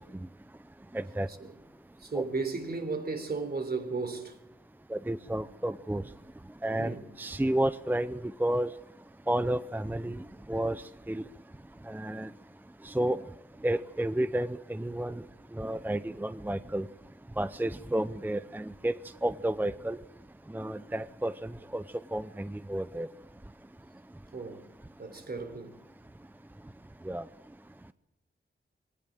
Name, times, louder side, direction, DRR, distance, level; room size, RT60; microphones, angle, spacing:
voice 1, 0.9-1.3 2.1-2.2 4.9-6.0 6.6-8.7 9.3-10.2 10.5-10.8 11.1-11.2 11.9-12.3 12.8-13.2 13.6-15.2 15.6-16.9 17.4-18.9 19.2-20.0 20.5-21.3 21.7-21.8 22.1-23.1 27.1-27.2, right 1 dB, 10° right, 0.7 m, -31 dB
voice 2, 2.0-4.4 6.8-7.0 24.3-24.6 25.0-25.7, right 4 dB, 50° right, 3.7 m, -35 dB
22.5 x 18.5 x 7.4 m
wide cardioid pair, 90°, 21 cm